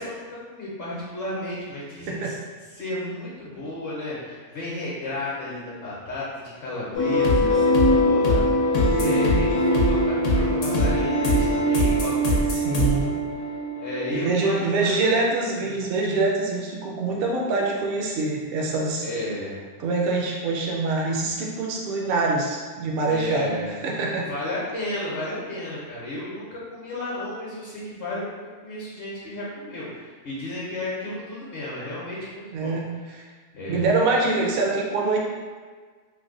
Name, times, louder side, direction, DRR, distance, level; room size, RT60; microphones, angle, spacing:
voice 1, 0.0-2.3 2.7-13.2 13.8-15.1 15.6-15.8 19.0-19.6 23.1-23.8 24.2-28.2 28.6-32.8 33.5-33.9, left 1 dB, 55° left, -7 dB, 1.1 m, -33 dB
sound 1, 6.9-14.3, equal, 85° left, 1.1 m, -21 dB
voice 2, 9.0-9.4 12.6-13.2 14.1-19.0 19.8-23.5 23.8-24.3 32.5-33.2 33.7-35.2, right 3 dB, 60° right, -2 dB, 0.7 m, -25 dB
3.2 x 2.2 x 3.7 m, 1.5 s
omnidirectional pair, 1.3 m